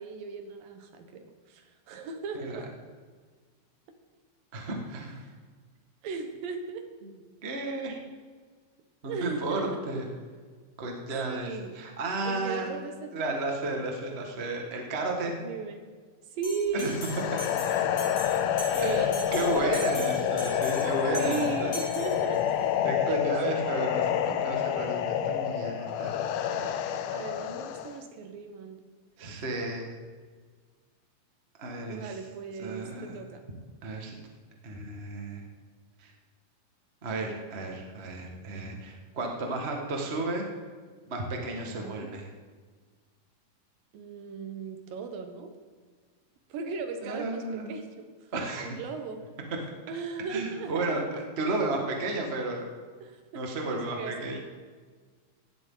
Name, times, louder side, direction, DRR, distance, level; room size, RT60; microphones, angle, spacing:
voice 1, 0.0-2.7 5.2-5.3 6.0-6.8 9.0-9.8 11.2-11.7 12.2-13.4 15.4-15.8 16.3-17.0 18.2-20.6 21.2-22.4 23.1-23.6 27.1-28.8 31.9-33.4 41.6-42.2 43.9-45.5 46.5-48.3 48.6-49.2 49.9-51.2 53.0-54.4, right 5 dB, 70° right, 6 dB, 2.7 m, -37 dB
voice 2, 4.5-5.2 7.0-7.1 7.4-8.0 9.0-10.1 10.8-11.5 11.7-12.7 13.1-15.4 16.7-16.9 18.8-21.7 22.8-26.2 29.2-29.9 31.6-32.2 32.6-33.2 33.8-34.2 34.6-35.4 36.0-36.1 37.0-40.5 41.1-42.3 47.0-47.7 48.3-48.7 50.3-52.7 53.3-54.4, right 2 dB, 45° right, 1 dB, 0.8 m, -33 dB
Bell, 16.4-22.7, left 1 dB, 50° left, 3.9 m, -41 dB
sound 1, 16.9-28.0, left 9 dB, 80° left, 2.5 m, -28 dB
17.0 x 12.0 x 3.9 m, 1.5 s
omnidirectional pair, 4.4 m